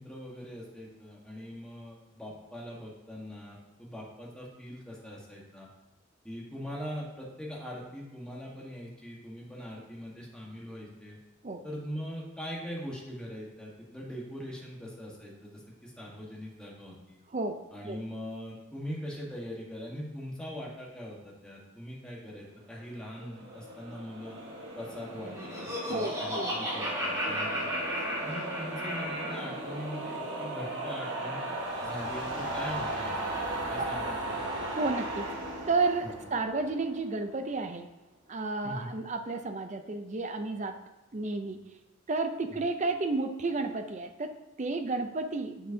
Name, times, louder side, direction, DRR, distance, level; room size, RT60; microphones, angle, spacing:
voice 1, 0.0-5.7 6.2-11.2 11.6-17.2 17.7-24.4 24.7-27.9 28.2-31.4 31.8-33.2 33.7-34.2 36.0-36.1 38.6-38.9 42.5-42.6, equal, 5° left, -4 dB, 1.3 m, -41 dB
voice 2, 17.3-17.6 17.9-18.0 25.8-26.5 33.8-33.9 34.6-35.3 35.6-37.9 38.3-40.8 41.1-41.6 42.1-45.7, right 3 dB, 35° right, 7 dB, 0.5 m, -32 dB
sound 1, 23.0-37.3, right 1 dB, 55° right, 1.4 m, -37 dB
Laughter, 25.1-29.5, equal, 15° right, 1.7 m, -34 dB
7.6 x 6.8 x 2.7 m, 0.96 s
head